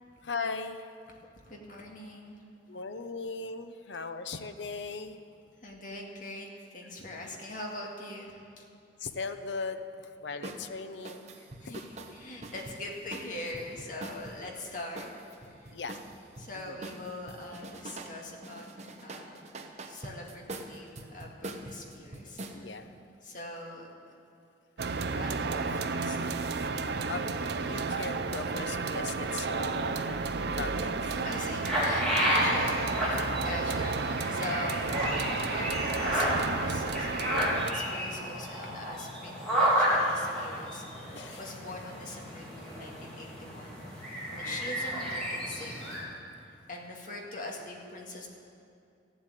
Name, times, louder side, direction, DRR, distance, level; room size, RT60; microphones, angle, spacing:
voice 1, 0.2-0.9 2.7-5.2 9.0-11.4 15.7-16.0 16.5-16.8 22.5-22.9 27.1-27.3 27.6-30.2 30.5-31.2 32.3-32.7 33.0-33.4 41.1-41.4 44.3-44.6, left 4 dB, 75° left, 9 dB, 0.8 m, -38 dB
voice 2, 1.5-2.4 5.6-8.7 11.6-15.1 15.4-15.7 16.4-19.5 19.8-22.8 23.2-23.9 25.1-26.2 31.2-35.1 35.5-46.0 46.4-48.3, left 1 dB, 45° left, 0 dB, 2.0 m, -42 dB
sound 1, 10.4-10.6 11.1-14.4 15.0-16.5 16.8-18.2 18.4-22.6, right 2 dB, 40° right, 0.9 m, -43 dB
sound 2, 24.8-37.7, right 4 dB, 60° right, 0.5 m, -32 dB
sound 3, 31.6-46.0, equal, 5° left, 3.1 m, -31 dB
14.0 x 7.9 x 9.0 m, 2.4 s
head